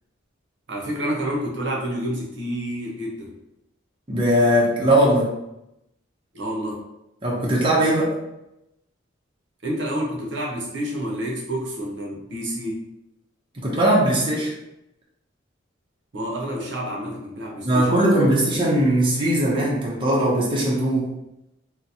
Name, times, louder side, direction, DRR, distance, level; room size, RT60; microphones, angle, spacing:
voice 1, 0.7-3.3 6.3-6.8 9.6-12.9 16.1-17.9, equal, 65° right, -2 dB, 0.7 m, -29 dB
voice 2, 4.1-5.3 7.2-8.2 13.5-14.5 17.6-21.1, right 1 dB, 25° right, -5 dB, 0.6 m, -19 dB
3.9 x 2.0 x 2.7 m, 0.88 s
head